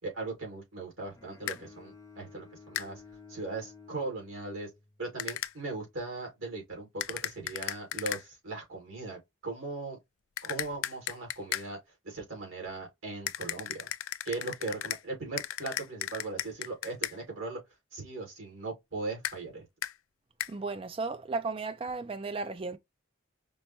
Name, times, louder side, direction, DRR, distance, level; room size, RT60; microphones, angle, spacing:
voice 1, 0.0-3.0 3.3-4.7 5.0-10.0 10.4-11.8 12.0-13.9 14.2-17.6 17.9-19.7, right 3 dB, 80° right, 2.2 m, -39 dB
Bowed string instrument, 1.1-5.3, left 4 dB, 15° left, 0.6 m, -53 dB
sound 1, 1.5-1.6 2.7-2.9 5.2-5.5 7.0-8.2 10.4-11.7 13.3-15.0 15.4-17.2 19.2-19.4 19.8-19.9 20.4-20.5, left 12 dB, 85° left, 0.3 m, -35 dB
voice 2, 20.5-22.8, right 3 dB, 25° right, 0.4 m, -35 dB
5.3 x 2.1 x 2.9 m
head